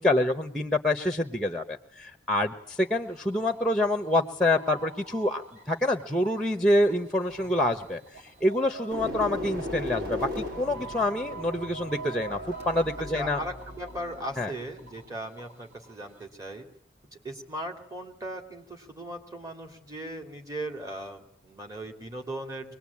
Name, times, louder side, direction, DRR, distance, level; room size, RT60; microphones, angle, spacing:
voice 1, 0.0-8.0 8.4-13.4 14.4-14.5, left 1 dB, 5° left, 7 dB, 1.0 m, -26 dB
sound 1, 2.6-16.2, right 3 dB, 40° right, 6.7 m, -50 dB
sound 2, 7.3-15.1, left 1 dB, 55° right, 6.1 m, -38 dB
voice 2, 13.1-16.7 17.2-22.8, right 1 dB, 20° right, 3 dB, 2.9 m, -38 dB
24.5 x 20.0 x 8.6 m, 0.66 s
head